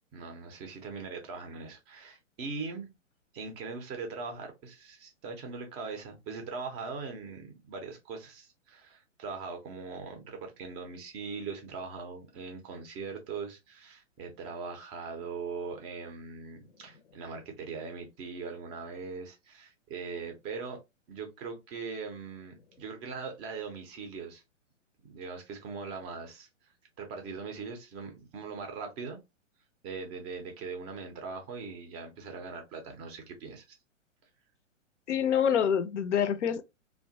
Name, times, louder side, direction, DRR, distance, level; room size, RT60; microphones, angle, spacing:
voice 1, 0.1-2.9 3.3-20.8 21.1-24.4 25.0-26.5 27.0-29.2 29.8-33.6, right 4 dB, 15° right, 0.4 m, -40 dB
voice 2, 35.1-36.6, left 8 dB, 70° left, 0.5 m, -26 dB
2.9 x 2.2 x 2.6 m
figure-of-eight pair, 120°, 38 cm